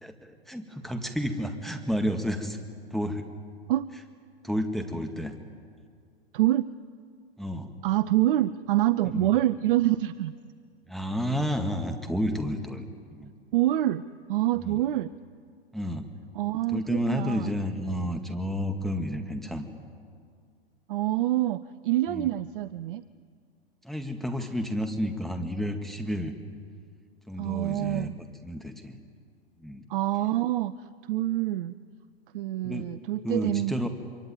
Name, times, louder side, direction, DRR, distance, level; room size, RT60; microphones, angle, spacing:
voice 1, 0.0-2.6 2.9-3.3 4.4-5.3 7.4-7.8 9.1-9.3 10.9-13.3 14.6-14.8 15.7-16.1 16.7-19.7 22.1-22.3 23.8-26.4 27.3-29.0 29.6-29.8 32.6-32.9 33.2-33.9, equal, ahead, 4 dB, 1.8 m, -31 dB
voice 2, 6.3-6.7 7.8-10.3 13.5-14.0 14.3-15.1 16.3-17.5 20.9-23.0 27.4-28.2 29.9-30.7 31.0-31.7 32.3-33.9, right 14 dB, 55° right, 15 dB, 0.8 m, -26 dB
26.0 x 24.0 x 9.2 m, 2.1 s
figure-of-eight pair, 100°, 31 cm